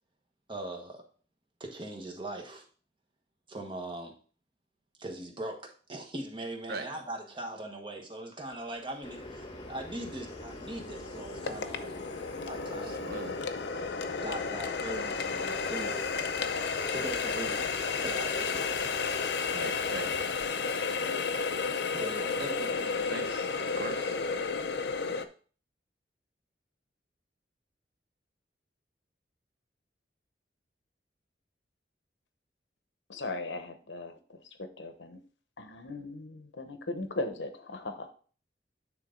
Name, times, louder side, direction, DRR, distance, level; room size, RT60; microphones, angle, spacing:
voice 1, 0.5-1.0 1.6-2.7 3.5-4.1 5.0-12.0 12.5-13.1 14.2-16.1 16.9-18.8 21.9-23.3 23.7-23.9, right 1 dB, 30° right, 2 dB, 1.3 m, -41 dB
Water tap faucet, 8.8-8.9 9.4-25.3, left 5 dB, 65° left, 0.6 m, -33 dB
sound 1, 9.0-20.3, left 1 dB, 25° left, 1.1 m, -45 dB
voice 2, 12.9-13.4 19.5-20.1 23.1-24.2, right 2 dB, 60° right, 6 dB, 1.1 m, -40 dB
voice 3, 33.1-34.2 34.6-35.2 35.6-38.1, left 2 dB, 85° left, 7 dB, 1.1 m, -38 dB
9.3 x 3.8 x 3.8 m, 0.41 s
head